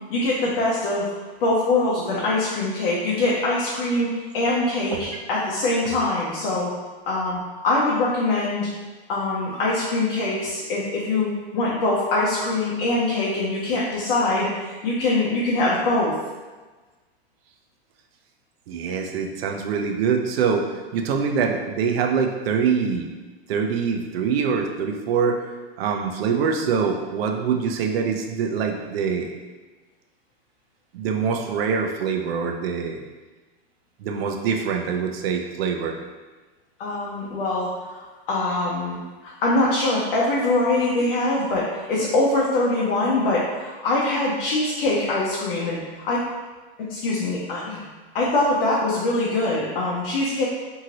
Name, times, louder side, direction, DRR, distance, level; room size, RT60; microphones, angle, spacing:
voice 1, 0.1-1.1 1.4-6.7 7.1-8.7 9.1-16.1 36.8-46.2 46.9-47.9 48.1-50.5, left 2 dB, 60° left, -6 dB, 0.7 m, -23 dB
voice 2, 18.7-23.1 23.5-25.4 25.8-29.3 30.9-33.0 34.0-36.0, right 6 dB, 70° right, 3 dB, 0.5 m, -24 dB
2.7 x 2.6 x 2.9 m, 1.3 s
supercardioid pair, 155°, 31 cm